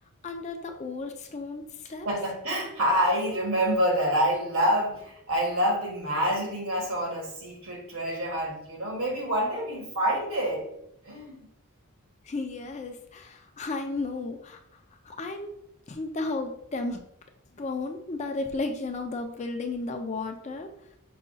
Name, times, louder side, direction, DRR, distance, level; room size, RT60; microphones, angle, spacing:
voice 1, 0.2-2.1 12.2-14.6 15.0-15.5 15.9-17.0 17.5-20.7, left 3 dB, 30° left, 5 dB, 0.4 m, -33 dB
voice 2, 2.0-10.7 11.0-11.5, equal, 70° right, -1 dB, 1.5 m, -27 dB
5.6 x 2.3 x 3.9 m, 0.75 s
head